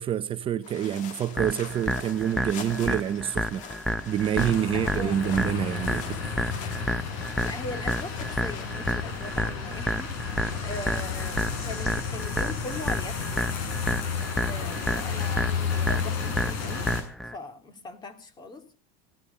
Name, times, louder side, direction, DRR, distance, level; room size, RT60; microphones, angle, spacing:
voice 1, 0.0-3.6 4.1-6.2, right 10 dB, 30° right, 0.7 m, -27 dB
sound 1, 0.6-8.6, left 6 dB, 45° left, 3.1 m, -43 dB
sound 2, 1.4-17.4, equal, ahead, 0.7 m, -31 dB
sound 3, 4.4-17.0, left 6 dB, 75° left, 7.2 m, -32 dB
voice 2, 4.7-5.2 7.4-13.2 14.4-16.9 17.3-18.7, left 2 dB, 25° left, 3.1 m, -40 dB
17.5 x 14.0 x 5.6 m
cardioid pair, 145°, 17 cm